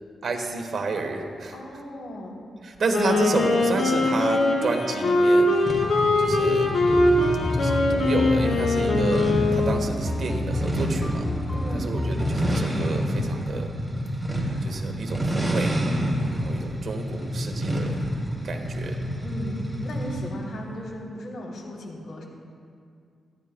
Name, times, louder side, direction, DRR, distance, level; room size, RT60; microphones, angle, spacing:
voice 1, 0.2-1.6 2.6-5.7 6.2-6.7 7.5-11.3 11.7-13.7 14.6-15.8 16.3-17.9 18.4-19.0, right 3 dB, 50° right, 3 dB, 1.2 m, -30 dB
voice 2, 1.5-2.4 11.5-11.9 19.2-22.2, left 1 dB, 90° left, -2 dB, 3.1 m, -36 dB
Wind instrument woodwind instrument, 2.8-10.0, left 2 dB, 55° left, 2.2 m, -22 dB
sound 1, 5.7-20.3, equal, 5° right, 2.4 m, -28 dB
sound 2, 6.9-12.6, left 2 dB, 10° left, 0.4 m, -31 dB
28.5 x 11.0 x 2.2 m, 2.3 s
wide cardioid pair, 145°, 0 cm